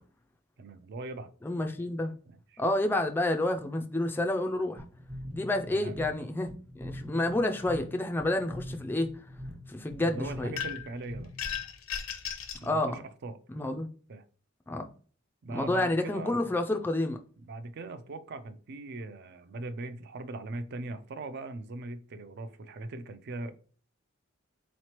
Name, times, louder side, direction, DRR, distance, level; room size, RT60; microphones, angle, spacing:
voice 1, 0.6-1.3 2.3-2.6 5.7-6.0 10.0-11.3 12.6-13.4 14.1-14.2 15.4-16.4 17.4-23.6, right 2 dB, 55° right, 0.4 m, -40 dB
voice 2, 1.4-2.2 2.6-4.9 5.3-9.2 9.7-10.5 12.6-13.0 13.5-13.9 14.7-14.9 15.5-17.2, left 1 dB, 10° left, 0.3 m, -29 dB
sound 1, 4.8-11.6, equal, 35° right, 1.0 m, -44 dB
sound 2, 10.6-11.0 11.4-12.7, left 8 dB, 75° left, 0.6 m, -35 dB
4.0 x 3.0 x 2.9 m
head